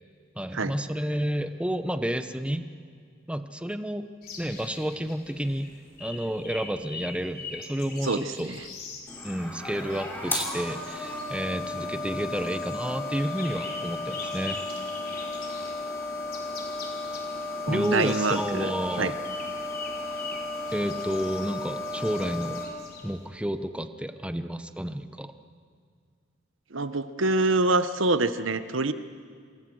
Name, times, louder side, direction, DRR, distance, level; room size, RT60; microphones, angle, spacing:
voice 1, 0.3-2.7 3.3-4.1 4.4-5.7 6.0-8.5 9.2-14.6 17.7-19.1 20.7-22.6 23.0-25.3, equal, 5° right, 9 dB, 1.0 m, -30 dB
sound 1, 4.2-23.3, left 4 dB, 50° left, 4.4 m, -44 dB
voice 2, 8.0-8.6 17.7-18.7 19.0-19.1 26.7-28.9, right 2 dB, 75° right, 11 dB, 1.2 m, -25 dB
sound 2, 9.1-22.6, left 2 dB, 10° left, 5.3 m, -34 dB
27.0 x 27.0 x 6.4 m, 2.1 s
head